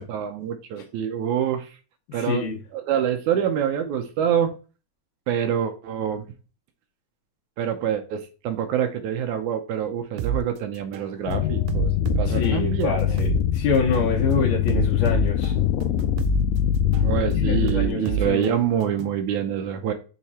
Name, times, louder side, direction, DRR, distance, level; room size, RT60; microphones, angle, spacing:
voice 1, 0.0-1.7 2.1-2.5 2.7-4.5 5.3-6.3 7.6-13.2 17.0-19.9, right 9 dB, 75° right, 2.0 m, -26 dB
voice 2, 2.1-2.6 12.2-15.5 17.1-18.5, left 5 dB, 70° left, 2.5 m, -26 dB
sound 1, 10.2-10.4 10.9-11.1 11.7-13.4 13.9-14.1 14.7-16.4 16.9-17.1 17.7-19.2, right 9 dB, 90° right, 2.3 m, -28 dB
sound 2, 11.3-17.7, left 10 dB, 90° left, 2.3 m, -23 dB
6.5 x 3.4 x 4.2 m
omnidirectional pair, 3.9 m